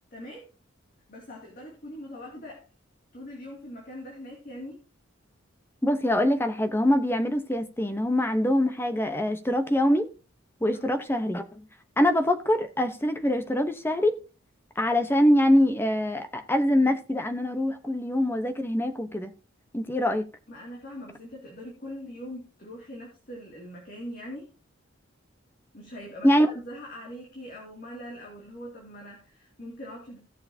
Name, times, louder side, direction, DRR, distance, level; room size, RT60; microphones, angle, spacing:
voice 1, 0.1-0.5 1.1-2.7 3.1-4.8 10.7-10.9 20.5-24.5 25.7-30.2, equal, 40° left, 2.5 m, -42 dB
voice 2, 5.8-10.1 10.6-11.6 12.0-14.1 14.8-19.3 19.7-20.3 26.2-26.5, left 1 dB, 10° left, 0.8 m, -24 dB
17.0 x 6.7 x 2.7 m
head